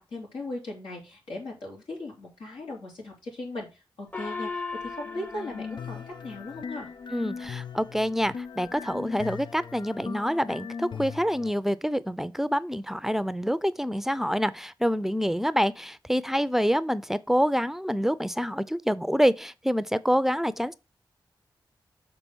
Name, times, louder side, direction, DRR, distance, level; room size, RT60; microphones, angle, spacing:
voice 1, 0.1-6.9, left 2 dB, 85° left, 3.5 m, -38 dB
Gong, 4.1-7.0, left 4 dB, 20° left, 0.9 m, -38 dB
sound 1, 5.0-11.5, left 6 dB, 65° left, 0.4 m, -39 dB
voice 2, 7.1-20.7, equal, 5° right, 0.5 m, -26 dB
6.9 x 3.9 x 6.1 m
cardioid pair, 45°, 9 cm